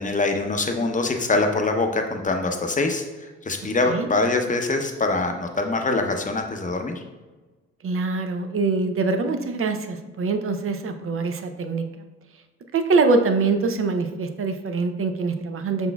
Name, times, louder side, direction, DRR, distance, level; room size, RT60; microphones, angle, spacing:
voice 1, 0.0-7.0, left 3 dB, 20° left, 4 dB, 0.8 m, -24 dB
voice 2, 7.8-12.1 12.7-15.9, right 4 dB, 40° right, 7 dB, 0.6 m, -24 dB
5.6 x 4.1 x 2.3 m, 1.2 s
hypercardioid pair, 55°, 34 cm